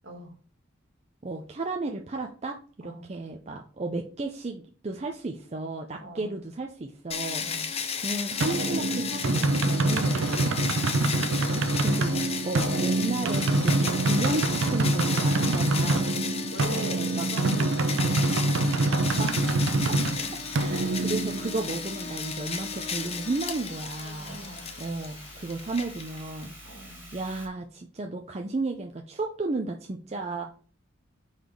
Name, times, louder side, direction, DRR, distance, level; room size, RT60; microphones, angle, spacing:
voice 1, 0.0-0.3 2.8-3.0 6.0-6.3 7.4-7.7 10.7-12.1 15.4-15.9 16.5-19.2 19.8-21.0 24.2-24.7 26.6-27.0 30.1-30.5, right 1 dB, 60° right, 3 dB, 1.7 m, -44 dB
voice 2, 1.2-7.5 8.0-10.7 11.8-12.1 12.4-16.2 16.9-17.5 19.2-19.5 20.5-24.4 24.8-26.6 27.1-30.4, right 2 dB, 30° right, 3 dB, 0.5 m, -33 dB
sound 1, 7.1-26.5, left 6 dB, 30° left, 0.6 m, -34 dB
sound 2, 8.4-21.9, right 2 dB, 75° right, 0.6 m, -26 dB
sound 3, 19.0-27.5, equal, 10° right, 2.2 m, -47 dB
4.8 x 4.1 x 5.2 m, 0.41 s
head